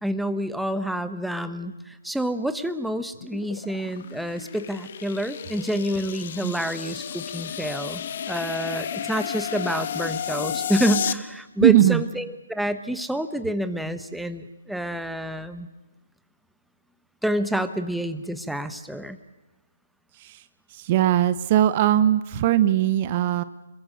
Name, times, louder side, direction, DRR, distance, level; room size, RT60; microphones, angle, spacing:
voice 1, 0.0-8.0 8.3-15.7 17.2-19.2, equal, ahead, 10 dB, 1.1 m, -28 dB
sound 1, 3.1-11.1, left 9 dB, 50° left, 1.2 m, -32 dB
voice 2, 11.6-12.1 20.2-20.4 20.7-23.4, right 12 dB, 35° right, 15 dB, 0.8 m, -20 dB
27.0 x 22.5 x 6.6 m, 1.1 s
figure-of-eight pair, 145°, 0 cm